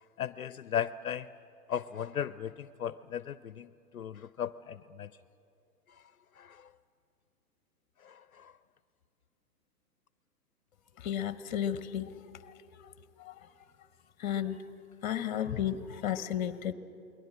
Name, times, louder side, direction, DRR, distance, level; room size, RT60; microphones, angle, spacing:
voice 1, 0.2-1.3 1.7-5.1 6.0-6.1 6.4-6.7 8.0-8.5, left 9 dB, 60° left, 16 dB, 0.6 m, -37 dB
voice 2, 11.0-12.1 13.2-13.3 14.2-14.6 15.0-16.7, left 10 dB, 30° left, 14 dB, 1.0 m, -33 dB
29.0 x 21.0 x 7.6 m, 2.8 s
figure-of-eight pair, 120°, 47 cm